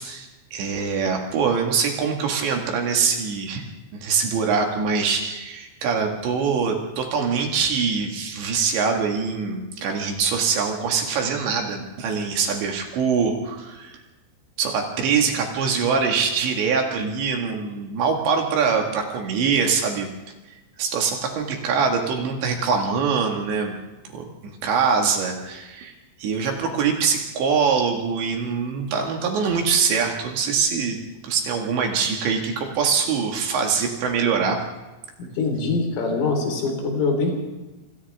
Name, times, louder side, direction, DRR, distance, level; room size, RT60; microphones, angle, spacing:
voice 1, 0.0-3.6 3.9-14.0 14.6-20.1 20.5-23.8 24.1-31.0 31.2-34.6, right 5 dB, 65° right, 2 dB, 4.0 m, -23 dB
voice 2, 35.2-37.3, left 3 dB, 75° left, 2 dB, 6.9 m, -23 dB
27.0 x 26.5 x 3.6 m, 1.1 s
omnidirectional pair, 5.8 m